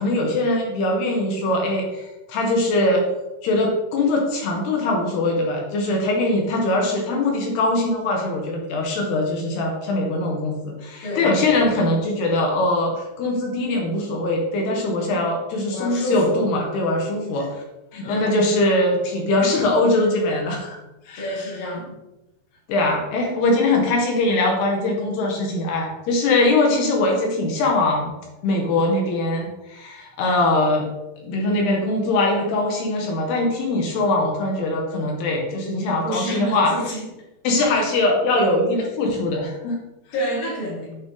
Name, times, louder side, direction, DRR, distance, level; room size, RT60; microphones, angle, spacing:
voice 1, 0.0-3.1 3.4-17.6 17.9-20.8 21.1-21.3 22.7-28.1 28.4-30.9 31.2-36.7 37.4-39.8, left 2 dB, 75° left, 1 dB, 2.7 m, -22 dB
voice 2, 15.7-16.5 18.0-18.3 21.2-21.9 36.0-37.0 40.1-40.9, equal, 55° left, -5 dB, 3.3 m, -28 dB
9.0 x 3.5 x 3.7 m, 0.99 s
omnidirectional pair, 5.5 m